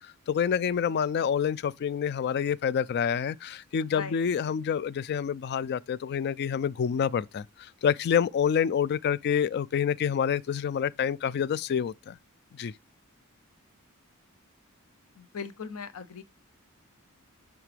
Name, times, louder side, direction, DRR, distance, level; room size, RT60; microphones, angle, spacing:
voice 1, 0.0-12.2 12.5-12.7, left 7 dB, 50° left, 0.3 m, -27 dB
voice 2, 3.9-4.2 15.2-16.2, left 5 dB, 80° left, 0.7 m, -39 dB
10.5 x 3.7 x 3.3 m
head